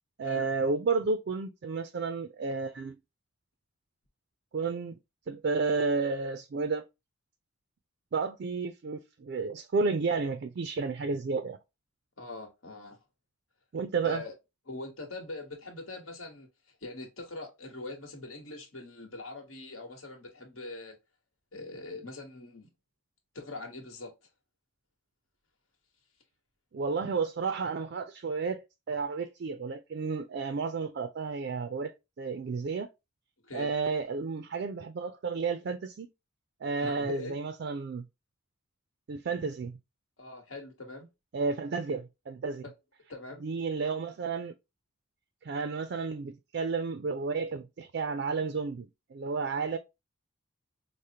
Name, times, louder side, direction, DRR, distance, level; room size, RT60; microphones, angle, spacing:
voice 1, 0.2-3.0 4.5-5.0 5.3-6.8 8.1-11.6 13.7-14.2 26.7-31.9 32.2-32.9 33.5-36.1 36.6-38.1 39.1-39.8 41.3-42.6 43.4-44.5 45.4-49.8, right 4 dB, 55° right, 0.3 m, -32 dB
voice 2, 12.2-13.0 14.0-14.3 14.7-16.5 16.8-21.0 21.5-22.7 23.3-24.2 33.4-33.7 36.8-37.4 40.2-41.1 42.6-42.7 43.1-43.5, left 2 dB, 70° left, 1.2 m, -42 dB
4.9 x 2.0 x 2.7 m
head